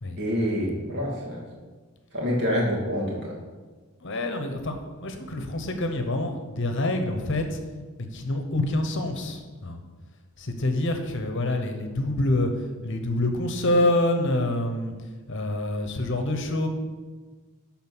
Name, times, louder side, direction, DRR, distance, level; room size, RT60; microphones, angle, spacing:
voice 1, 0.2-1.4 2.1-3.4, equal, 50° right, -4 dB, 2.6 m, -26 dB
voice 2, 4.0-7.6 8.1-9.8 10.4-12.5 12.8-14.9 15.3-16.7, left 1 dB, 55° left, 6 dB, 1.0 m, -26 dB
11.5 x 4.3 x 6.2 m, 1.4 s
head